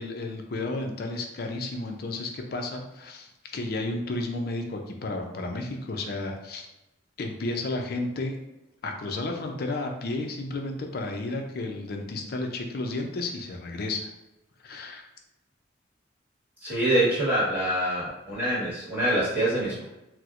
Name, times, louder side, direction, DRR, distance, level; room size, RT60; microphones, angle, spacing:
voice 1, 0.0-6.7 7.2-8.3 8.8-14.1 14.6-15.0, left 2 dB, 50° left, 3 dB, 0.4 m, -32 dB
voice 2, 16.6-19.8, right 1 dB, 10° right, -8 dB, 1.3 m, -25 dB
4.3 x 2.0 x 2.5 m, 0.93 s
head